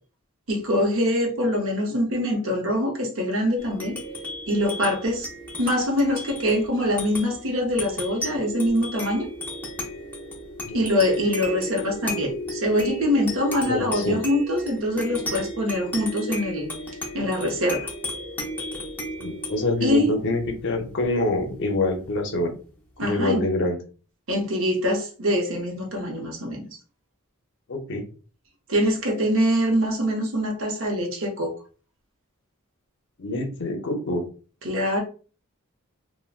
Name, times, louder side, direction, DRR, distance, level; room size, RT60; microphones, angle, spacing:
voice 1, 0.5-4.0 4.5-5.3 5.6-9.3 10.7-16.7 17.1-17.9 19.8-20.1 23.0-23.4 24.3-26.7 28.7-31.5 34.6-35.0, equal, 65° right, 1 dB, 0.7 m, -24 dB
sound 1, 3.6-22.4, left 1 dB, 10° left, 0.7 m, -35 dB
voice 2, 13.7-14.2 19.2-22.5 23.0-23.8 27.7-28.0 33.2-34.2, left 2 dB, 55° left, 3 dB, 0.6 m, -26 dB
3.3 x 2.1 x 2.4 m, 0.37 s
head